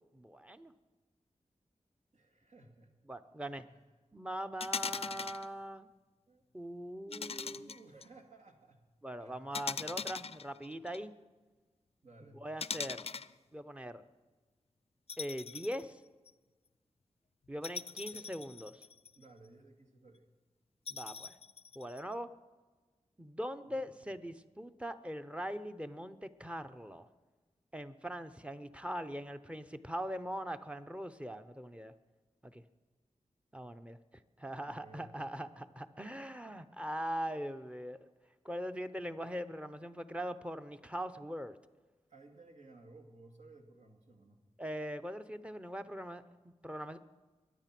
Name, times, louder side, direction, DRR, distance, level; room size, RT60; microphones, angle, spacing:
voice 1, 0.1-0.7 3.1-3.6 4.1-5.9 6.5-7.7 9.0-11.1 12.4-13.1 13.5-14.0 15.2-16.0 17.5-18.8 20.9-21.4 21.8-22.3 23.2-27.1 27.7-31.9 32.4-32.6 33.5-34.0 34.4-38.1 38.4-41.6 44.6-47.0, equal, 10° right, 10 dB, 0.7 m, -41 dB
voice 2, 2.1-2.9 3.6-3.8 6.3-6.4 7.1-8.8 9.2-9.6 12.0-12.4 18.1-18.3 19.1-20.3 23.6-24.1 34.5-35.3 42.1-44.4, right 2 dB, 75° right, 2 dB, 2.2 m, -57 dB
sound 1, 4.6-5.5 7.1-8.0 9.5-11.0 12.6-13.3 15.1-15.8 16.3-16.4 17.6-19.2 20.9-22.0, left 5 dB, 55° left, 0.4 m, -40 dB
23.0 x 9.1 x 6.0 m, 1.3 s
wide cardioid pair, 100°, 12 cm